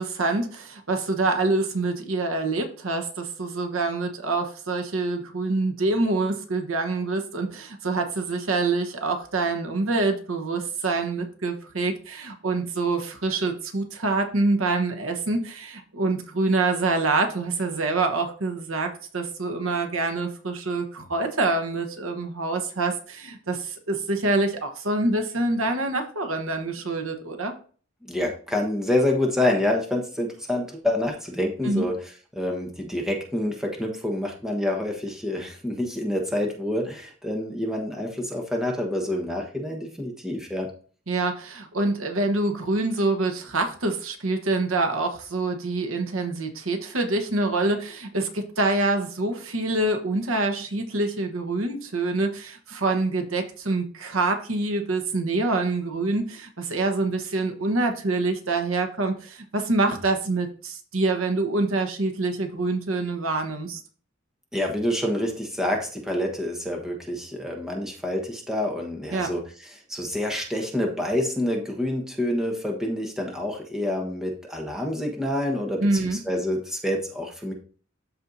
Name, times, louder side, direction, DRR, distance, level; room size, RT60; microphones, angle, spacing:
voice 1, 0.0-27.5 31.6-31.9 41.1-63.8 69.1-69.3 75.8-76.2, right 2 dB, 90° right, 5 dB, 1.2 m, -26 dB
voice 2, 28.0-31.9 32.3-40.7 64.5-69.4 69.9-77.5, left 1 dB, 5° right, 0 dB, 1.2 m, -27 dB
13.0 x 4.4 x 2.7 m, 0.42 s
head